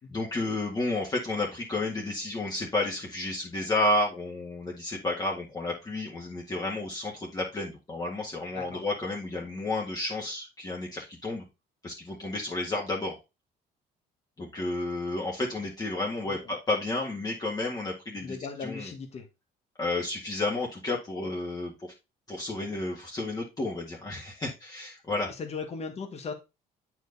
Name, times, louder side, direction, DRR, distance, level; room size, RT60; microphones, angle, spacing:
voice 1, 0.1-11.4 11.8-13.2 14.4-18.4 18.6-18.9 19.8-21.7 22.3-25.3, left 2 dB, 20° left, 1.9 m, -31 dB
voice 2, 8.5-8.8 16.2-16.5 18.2-19.3 25.3-26.3, left 5 dB, 40° left, 1.6 m, -38 dB
7.9 x 4.7 x 4.0 m
cardioid pair, 110°, 17 cm